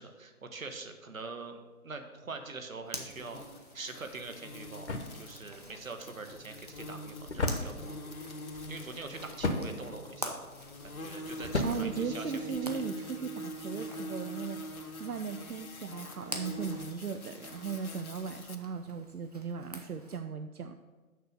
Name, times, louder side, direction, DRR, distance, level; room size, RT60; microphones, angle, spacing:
voice 1, 0.0-3.4 3.7-8.0 8.7-10.5 10.8-12.8, right 3 dB, 65° right, 6 dB, 1.3 m, -44 dB
Zipper (clothing), 2.8-20.2, right 1 dB, 30° right, 0.6 m, -48 dB
sound 1, 3.1-18.6, equal, 70° left, 1.1 m, -44 dB
sound 2, 4.0-12.9, left 2 dB, 50° left, 1.0 m, -38 dB
voice 2, 11.6-20.7, right 6 dB, 85° right, 8 dB, 0.6 m, -37 dB
6.6 x 6.1 x 6.5 m, 1.3 s
figure-of-eight pair, 150°, 44 cm